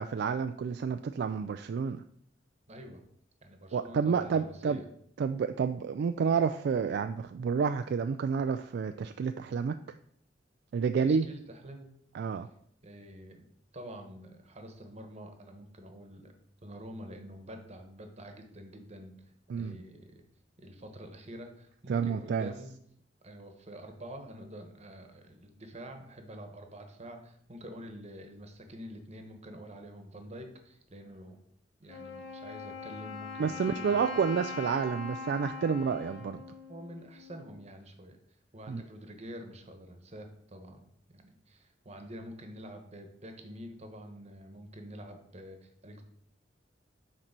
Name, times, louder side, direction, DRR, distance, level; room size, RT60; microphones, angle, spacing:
voice 1, 0.0-2.0 3.7-4.8 5.2-9.8 10.7-11.3 12.1-12.5 19.5-19.8 21.9-22.5 33.4-36.4 38.7-38.8, right 6 dB, 60° right, 9 dB, 0.3 m, -29 dB
voice 2, 2.7-3.0 3.4-4.9 11.0-11.9 12.8-13.5 13.7-16.3 16.6-19.1 19.5-20.2 20.6-22.7 23.2-31.4 31.8-34.3 36.3-36.4 36.7-38.2 38.5-46.0, equal, 35° right, 5 dB, 1.1 m, -47 dB
Wind instrument woodwind instrument, 31.9-37.6, left 4 dB, 60° left, 1.4 m, -42 dB
6.6 x 4.4 x 5.9 m, 0.67 s
head